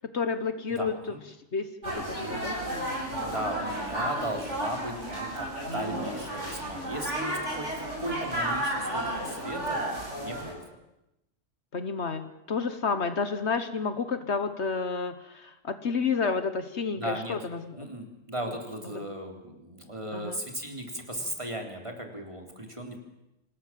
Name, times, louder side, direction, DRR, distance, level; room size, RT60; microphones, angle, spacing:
voice 1, 0.1-1.2 1.5-2.9 11.7-17.9 20.1-20.4, left 5 dB, 65° left, 10 dB, 1.5 m, -30 dB
voice 2, 0.7-1.2 3.2-5.5 5.7-9.8 10.2-10.7 17.0-17.4 17.8-23.0, right 1 dB, 25° right, 2 dB, 3.8 m, -37 dB
sound 1, 1.8-10.5, right 1 dB, 70° right, 8.4 m, -32 dB
25.5 x 19.0 x 7.6 m, 0.90 s
omnidirectional pair, 1.2 m